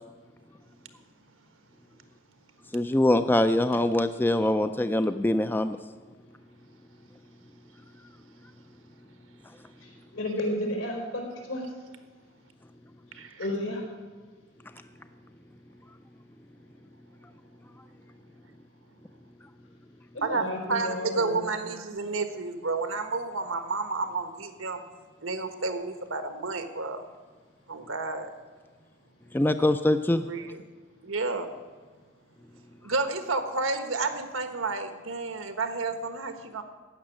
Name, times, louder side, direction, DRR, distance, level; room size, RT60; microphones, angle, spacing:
voice 1, 2.7-5.8 29.3-30.2, left 1 dB, 10° left, 10 dB, 0.3 m, -23 dB
voice 2, 10.1-11.2 11.5-11.6 13.4-13.8 20.3-21.4, left 1 dB, 80° left, 0 dB, 4.4 m, -31 dB
voice 3, 13.1-13.5 20.2-24.8 25.2-27.0 27.7-28.3 30.3-30.6 31.0-31.5 32.8-36.6, right 3 dB, 90° right, 8 dB, 1.4 m, -31 dB
15.0 x 6.4 x 9.9 m, 1.5 s
head